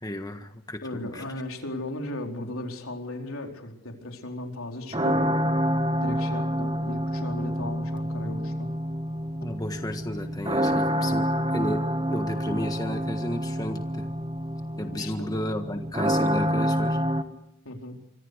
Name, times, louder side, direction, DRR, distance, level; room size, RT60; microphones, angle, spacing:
voice 1, 0.0-1.2 9.4-14.1 14.8-17.0, left 1 dB, 15° left, 6 dB, 1.5 m, -33 dB
voice 2, 0.8-5.3 6.0-8.7 14.8-15.3 17.6-18.0, left 1 dB, 80° left, 3 dB, 4.3 m, -36 dB
sound 1, 4.9-17.2, equal, 25° right, 1.5 m, -27 dB
26.0 x 25.0 x 6.7 m, 0.82 s
head